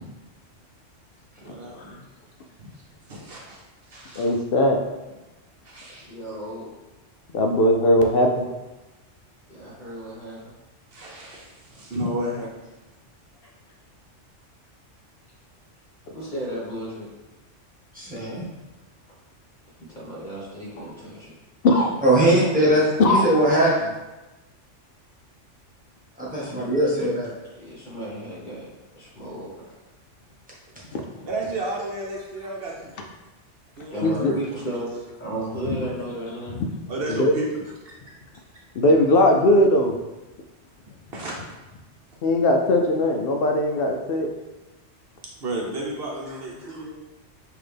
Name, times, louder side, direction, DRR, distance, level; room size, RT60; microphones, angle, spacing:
voice 1, 1.4-2.0 2.6-3.6 3.9-4.3 5.6-6.1 10.9-12.5 21.8-22.3 22.5-22.8 31.3-32.9 33.8-34.3 34.9-35.0 36.9-37.5 37.8-37.9 41.1-41.4 45.4-46.9, right 1 dB, 55° right, -2 dB, 0.9 m, -32 dB
voice 2, 4.2-4.8 7.3-8.3 20.8-20.9 21.6-21.9 23.0-23.2 30.9-31.0 34.0-34.3 35.7-35.8 36.6-36.7 37.2-37.3 38.8-39.9 42.2-44.3, left 1 dB, 60° left, 2 dB, 0.6 m, -19 dB
voice 3, 6.1-6.7 9.5-10.5 16.1-17.1 19.9-21.3 23.6-23.7 26.4-26.7 27.6-28.7 29.0-29.5 33.9-34.9 35.2-36.6 46.3-46.9, right 1 dB, 40° left, -5 dB, 1.5 m, -34 dB
voice 4, 17.9-18.4 22.0-23.9 26.2-27.3, right 1 dB, 5° right, -8 dB, 1.3 m, -20 dB
5.8 x 2.7 x 3.3 m, 1.1 s
omnidirectional pair, 1.3 m